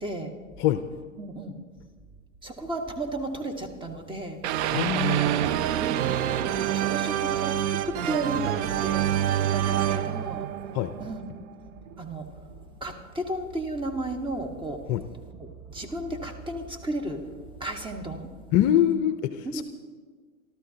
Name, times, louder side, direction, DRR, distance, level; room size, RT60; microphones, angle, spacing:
voice 1, 0.0-0.3 1.2-1.6 2.4-4.4 4.9-5.4 5.8-6.0 6.5-9.1 9.5-10.5 11.0-11.3 12.0-12.3 12.8-14.8 15.3-17.2 17.6-18.3 19.4-19.6, right 1 dB, 10° right, 4 dB, 1.4 m, -34 dB
sound 1, 4.4-11.4, right 11 dB, 55° right, 0.8 m, -26 dB
voice 2, 4.7-5.3 10.7-10.9 14.9-15.0 18.5-19.6, left 11 dB, 40° left, 10 dB, 0.6 m, -24 dB
sound 2, 10.6-18.2, right 8 dB, 75° right, 2.9 m, -49 dB
27.5 x 12.5 x 2.8 m, 1.5 s
hypercardioid pair, 105°, 42 cm